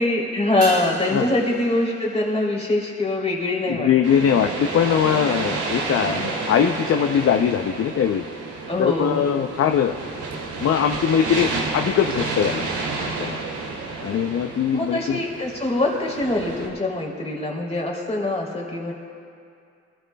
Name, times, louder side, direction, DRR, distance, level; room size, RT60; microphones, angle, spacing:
voice 1, 0.0-4.2 8.7-9.5 14.7-18.9, left 2 dB, 20° left, -2 dB, 3.1 m, -24 dB
sound 1, 0.6-5.3 5.6-5.7, right 1 dB, 55° right, 2.0 m, -38 dB
voice 2, 3.7-8.2 8.8-10.0 10.6-13.4 14.0-15.2, left 8 dB, 50° left, 6 dB, 0.6 m, -21 dB
sound 2, 4.0-16.7, right 3 dB, 80° right, 2.2 m, -30 dB
23.0 x 13.5 x 2.3 m, 2.4 s
cardioid pair, 90°, 30 cm